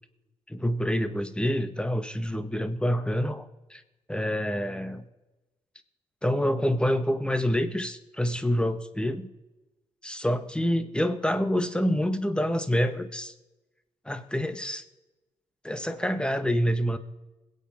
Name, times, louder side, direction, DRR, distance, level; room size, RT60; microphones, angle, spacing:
voice 1, 0.5-3.8 4.1-5.0 6.2-9.3 10.0-13.3 14.0-14.8 15.6-17.0, equal, 5° left, 10 dB, 1.6 m, -27 dB
21.5 x 8.3 x 3.7 m, 1.1 s
supercardioid pair, 50°, 14 cm